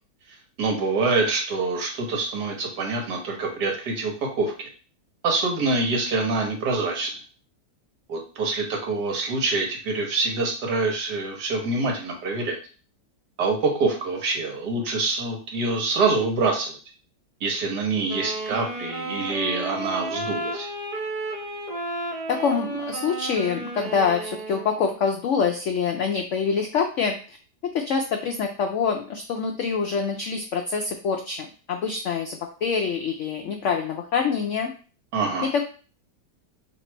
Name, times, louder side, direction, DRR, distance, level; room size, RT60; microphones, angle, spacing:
voice 1, 0.6-4.7 5.2-7.1 8.1-12.6 13.4-16.8 17.4-20.7 35.1-35.5, right 3 dB, 70° right, 1 dB, 1.5 m, -25 dB
Wind instrument woodwind instrument, 18.1-25.0, right 2 dB, 30° right, 1.1 m, -32 dB
voice 2, 22.3-27.2 27.7-34.7 35.4-35.7, left 6 dB, 80° left, 4 dB, 0.6 m, -25 dB
3.3 x 3.0 x 4.4 m, 0.38 s
omnidirectional pair, 1.8 m